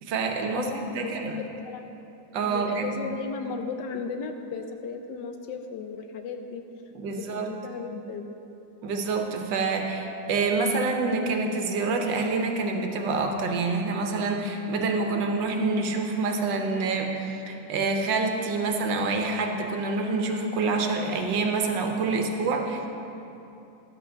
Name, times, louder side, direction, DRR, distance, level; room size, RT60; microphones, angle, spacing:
voice 1, 0.0-1.4 2.3-3.0 6.9-7.5 8.8-22.9, right 3 dB, 85° right, 3 dB, 1.6 m, -27 dB
voice 2, 0.5-1.9 2.4-6.6 7.1-8.3, left 5 dB, 75° left, 6 dB, 1.3 m, -36 dB
12.0 x 5.8 x 6.4 m, 2.9 s
omnidirectional pair, 1.9 m